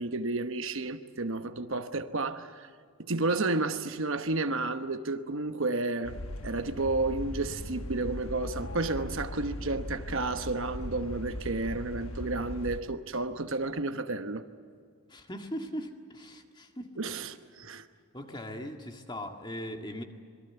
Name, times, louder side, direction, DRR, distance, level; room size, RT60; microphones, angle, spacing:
voice 1, 0.0-2.7 3.0-6.2 6.4-14.4 17.0-17.9, right 3 dB, 60° right, 1.1 m, -31 dB
sound 1, 6.0-12.8, left 1 dB, 70° left, 1.3 m, -39 dB
voice 2, 15.1-16.9 18.1-20.0, equal, 20° left, 1.9 m, -39 dB
26.0 x 22.0 x 8.1 m
head